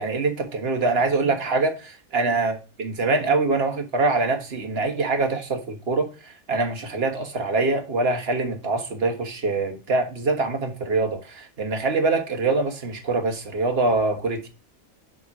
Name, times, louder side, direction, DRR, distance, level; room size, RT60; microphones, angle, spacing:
voice 1, 0.0-14.5, right 3 dB, 50° right, 1.5 m, -24 dB
6.9 x 3.7 x 5.8 m
omnidirectional pair, 1.4 m